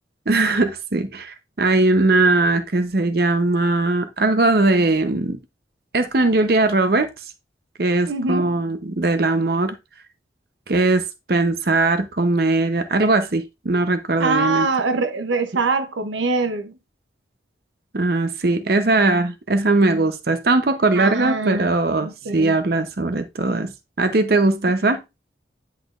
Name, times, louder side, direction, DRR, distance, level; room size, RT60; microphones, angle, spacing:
voice 1, 0.3-5.4 5.9-7.1 7.8-9.8 10.7-14.7 17.9-25.0, right 2 dB, 55° right, 0.7 m, -20 dB
voice 2, 8.1-8.6 14.2-16.7 21.0-21.7 22.0-22.6, right 3 dB, 90° right, 0.7 m, -23 dB
10.0 x 4.2 x 2.5 m
head